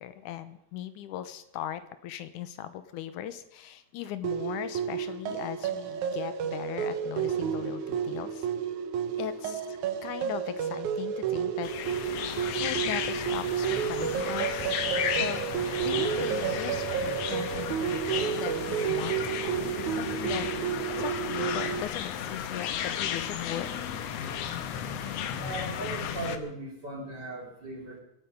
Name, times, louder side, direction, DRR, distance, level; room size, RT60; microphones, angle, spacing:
voice 1, 0.0-8.5 9.2-14.8 15.1-15.5 15.8-23.9, left 11 dB, 90° left, 12 dB, 2.4 m, -39 dB
sound 1, 4.2-21.8, right 8 dB, 75° right, 2.5 m, -31 dB
sound 2, 11.6-26.4, left 9 dB, 65° left, 1.9 m, -34 dB
voice 2, 25.4-28.0, right 2 dB, 35° right, -1 dB, 3.8 m, -38 dB
24.0 x 9.1 x 5.3 m, 0.76 s
omnidirectional pair, 3.5 m